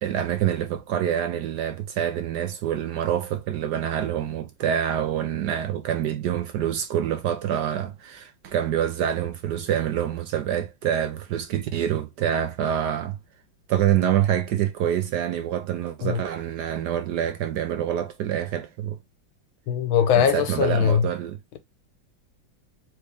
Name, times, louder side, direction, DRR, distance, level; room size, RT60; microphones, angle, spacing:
voice 1, 0.0-13.2 13.7-19.0 20.2-21.4, right 10 dB, 70° right, 1.0 m, -26 dB
voice 2, 19.7-21.1, left 8 dB, 85° left, 1.7 m, -21 dB
4.6 x 3.1 x 3.2 m
omnidirectional pair, 2.2 m